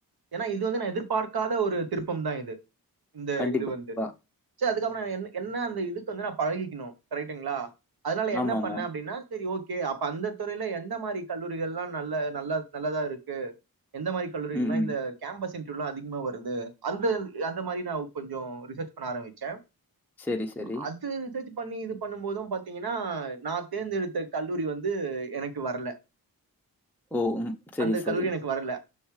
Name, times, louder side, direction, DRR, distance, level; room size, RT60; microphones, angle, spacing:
voice 1, 0.3-2.6 3.1-3.9 4.6-7.7 8.0-13.5 13.9-19.6 20.8-25.9 27.8-28.8, right 4 dB, 85° right, 1.1 m, -31 dB
voice 2, 8.3-8.8 14.5-14.9 20.3-20.9 27.1-28.2, left 1 dB, 5° left, 0.7 m, -29 dB
6.7 x 6.3 x 3.2 m
wide cardioid pair, 110°, 36 cm